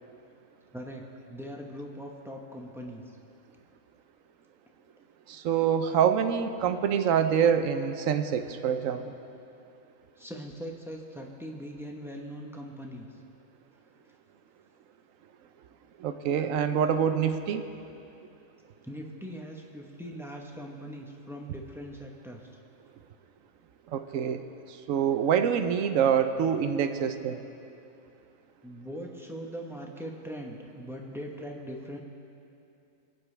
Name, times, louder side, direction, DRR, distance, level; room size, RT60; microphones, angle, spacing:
voice 1, 0.7-1.0 1.3-3.0 10.2-13.1 18.8-22.5 28.6-32.0, equal, ahead, 0 dB, 0.8 m, -41 dB
voice 2, 5.3-9.1 16.0-17.7 23.9-24.5 24.9-27.4, right 8 dB, 70° right, 8 dB, 1.0 m, -26 dB
23.0 x 9.1 x 3.3 m, 2.7 s
omnidirectional pair, 1.5 m